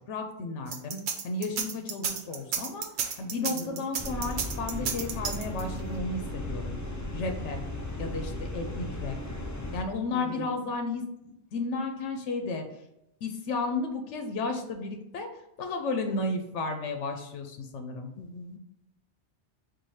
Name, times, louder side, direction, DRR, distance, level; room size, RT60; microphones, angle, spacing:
voice 1, 0.1-1.0 1.2-2.8 3.2-6.8 7.1-7.6 8.0-9.2 9.7-12.7 13.2-15.3 15.6-18.1, left 3 dB, 90° left, 5 dB, 1.0 m, -33 dB
sound 1, 0.7-5.8, right 7 dB, 70° right, 0.9 m, -32 dB
voice 2, 3.4-3.9 10.1-10.4 18.2-18.6, left 3 dB, 60° left, 7 dB, 0.7 m, -41 dB
sound 2, 4.0-9.8, left 1 dB, 25° left, 0.4 m, -36 dB
4.7 x 2.5 x 4.1 m, 0.85 s
omnidirectional pair, 1.2 m